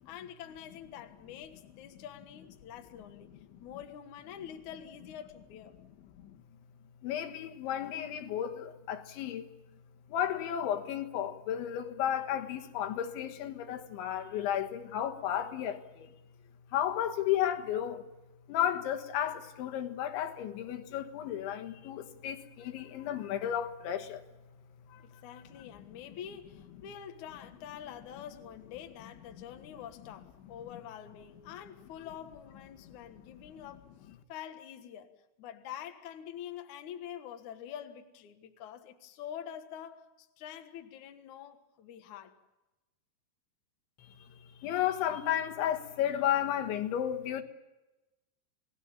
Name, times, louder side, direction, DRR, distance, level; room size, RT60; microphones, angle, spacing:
voice 1, 0.1-3.3 3.6-5.8 25.0-33.9 34.3-35.1 35.4-42.4, left 9 dB, 60° left, 2.1 m, -46 dB
voice 2, 7.0-9.5 10.1-16.1 16.7-18.0 18.5-24.2 24.9-25.0 29.4-29.5 32.9-33.0 44.0-47.4, left 10 dB, 80° left, 3.8 m, -33 dB
28.0 x 19.5 x 7.2 m
omnidirectional pair, 5.3 m